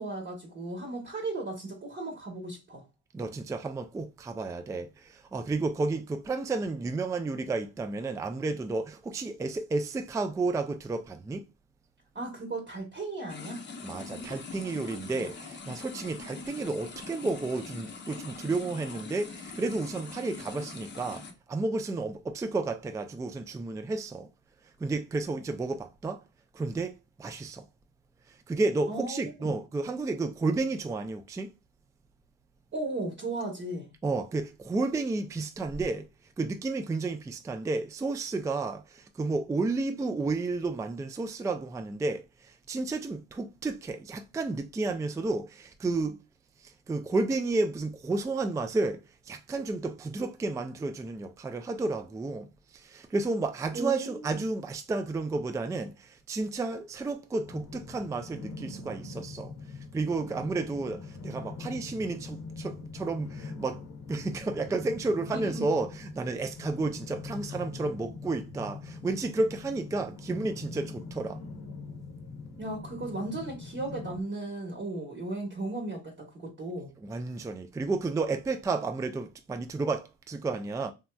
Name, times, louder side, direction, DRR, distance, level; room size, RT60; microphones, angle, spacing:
voice 1, 0.0-2.8 12.1-13.7 28.9-29.5 32.7-33.9 53.7-54.4 65.3-65.7 72.6-76.9, right 2 dB, 40° right, 1.0 m, -36 dB
voice 2, 3.1-11.4 13.8-24.3 24.8-26.2 26.5-26.9 27.2-27.6 28.3-31.5 34.0-36.1 36.4-46.2 46.6-49.0 49.3-59.5 59.9-63.8 64.1-71.4 77.0-80.9, right 3 dB, 10° right, 0.3 m, -32 dB
sound 1, 13.3-21.3, left 4 dB, 35° left, 0.7 m, -43 dB
sound 2, 57.4-74.2, left 4 dB, 70° left, 0.8 m, -42 dB
3.2 x 2.6 x 2.2 m
cardioid pair, 90°, 30 cm